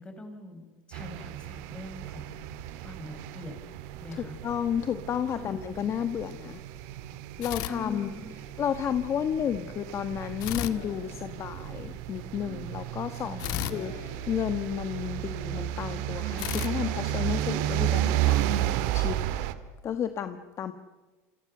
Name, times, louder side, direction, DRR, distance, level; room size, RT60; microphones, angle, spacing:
voice 1, 0.0-2.4 2.8-3.6 4.0-4.4 5.3-5.4 5.9-6.0 7.7-8.3 13.2-13.8, left 2 dB, 15° left, 6 dB, 5.2 m, -43 dB
sound 1, 0.9-19.5, right 13 dB, 70° right, 1.8 m, -33 dB
voice 2, 4.2-6.6 7.4-8.1 8.6-13.4 13.7-19.2 19.8-20.7, left 9 dB, 35° left, 10 dB, 1.3 m, -32 dB
sound 2, 7.4-8.6 10.4-11.8 13.4-15.1 16.4-17.9, left 15 dB, 60° left, 1.5 m, -37 dB
28.0 x 25.5 x 6.7 m, 1.3 s
supercardioid pair, 125°, 8 cm